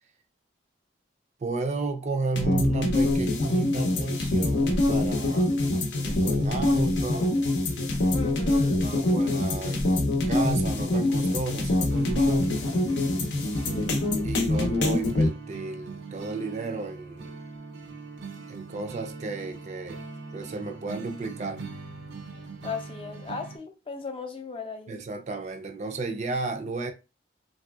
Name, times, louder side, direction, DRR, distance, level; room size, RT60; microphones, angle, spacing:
voice 1, 1.4-5.5 6.0-7.4 8.8-9.8 10.3-12.6 14.2-17.4 18.5-20.0 20.3-21.6 24.9-26.9, right 3 dB, 40° right, 0.4 m, -33 dB
sound 1, 2.4-15.3, left 2 dB, 75° left, 0.6 m, -24 dB
voice 2, 8.1-8.8 13.7-14.0 22.3-24.9, left 4 dB, 30° left, 0.4 m, -37 dB
sound 2, 11.9-23.6, right 4 dB, 85° right, 0.6 m, -41 dB
3.2 x 2.6 x 2.3 m
head